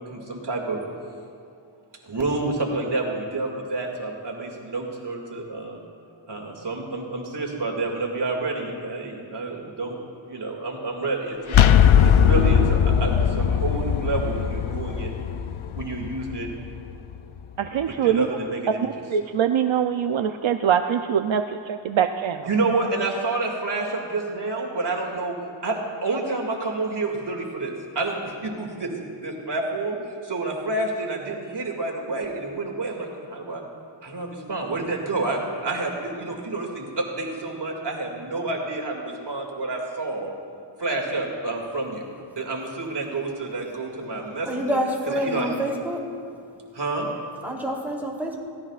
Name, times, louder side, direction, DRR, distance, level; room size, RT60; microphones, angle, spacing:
voice 1, 0.1-0.8 2.1-5.8 6.3-11.6 12.0-15.1 15.7-16.5 18.0-18.8 22.5-25.4 25.6-28.9 29.2-33.6 34.0-40.3 40.8-42.0 42.4-44.5 45.1-45.5 46.7-47.1, right 2 dB, 55° right, 0 dB, 2.4 m, -29 dB
sound 1, 11.5-17.2, left 8 dB, 85° left, 0.7 m, -20 dB
voice 2, 17.6-18.3 18.8-22.5, right 8 dB, 70° right, 7 dB, 0.6 m, -23 dB
voice 3, 44.4-46.1 47.4-48.4, equal, 5° right, -3 dB, 3.2 m, -27 dB
22.5 x 16.5 x 2.5 m, 2.4 s
wide cardioid pair, 70°, 48 cm